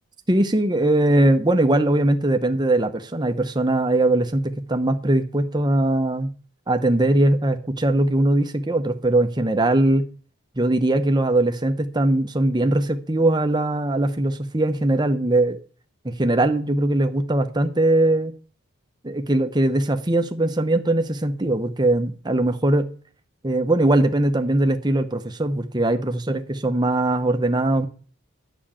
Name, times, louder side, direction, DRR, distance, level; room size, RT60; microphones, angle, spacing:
voice 1, 0.3-6.3 6.7-10.1 10.6-15.6 16.0-18.3 19.0-22.9 23.4-27.9, right 1 dB, 20° right, 0.8 m, -20 dB
9.7 x 6.2 x 8.7 m
head